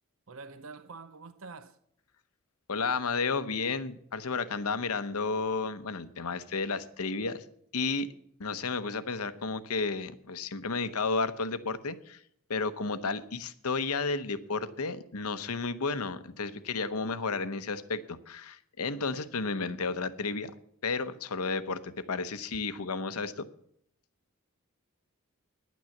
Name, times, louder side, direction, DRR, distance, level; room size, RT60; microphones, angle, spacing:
voice 1, 0.3-1.8, right 4 dB, 65° right, 0.7 m, -46 dB
voice 2, 2.7-7.4 7.7-8.1 8.4-12.2 12.5-20.5 20.8-23.4, left 4 dB, 85° left, 0.9 m, -32 dB
10.5 x 9.3 x 7.2 m
head